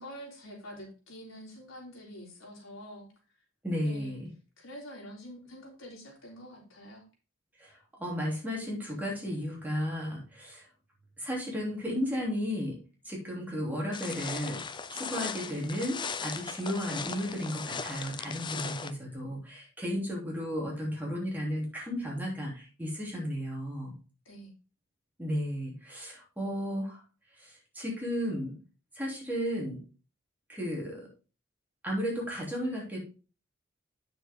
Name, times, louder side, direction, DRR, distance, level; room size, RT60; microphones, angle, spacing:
voice 1, 0.0-3.1 3.8-4.2 4.6-7.0 19.8-20.0 24.3-24.5, equal, 85° left, -1 dB, 3.6 m, -46 dB
voice 2, 3.6-4.3 7.6-10.7 11.2-12.8 13.0-14.6 14.9-23.9 25.2-27.0 27.4-28.5 28.9-29.8 30.5-31.1 31.8-33.0, equal, 10° right, -3 dB, 3.2 m, -34 dB
sound 1, 13.9-18.9, left 5 dB, 25° left, 0.5 m, -38 dB
8.9 x 6.8 x 3.7 m, 0.34 s
head